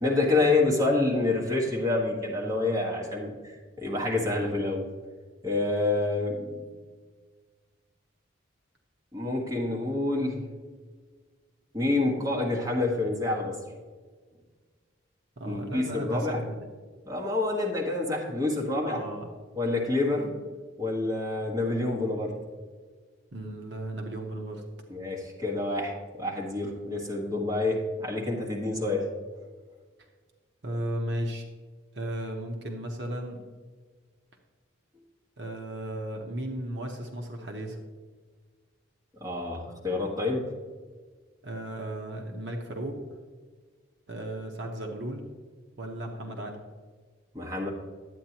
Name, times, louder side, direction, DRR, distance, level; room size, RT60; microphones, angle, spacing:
voice 1, 0.0-4.9 5.4-6.6 9.1-10.5 11.7-13.6 15.4-16.4 17.0-19.0 19.5-20.4 20.8-22.3 24.9-29.1 39.2-40.5 47.3-47.7, left 2 dB, 20° right, -2 dB, 1.4 m, -28 dB
voice 2, 15.4-16.7 18.8-19.3 23.3-24.6 30.6-31.5 31.9-33.4 35.4-37.8 41.4-43.0 44.1-45.2 45.8-46.6, right 1 dB, 60° right, 2 dB, 0.9 m, -35 dB
11.0 x 8.6 x 2.9 m, 1.5 s
head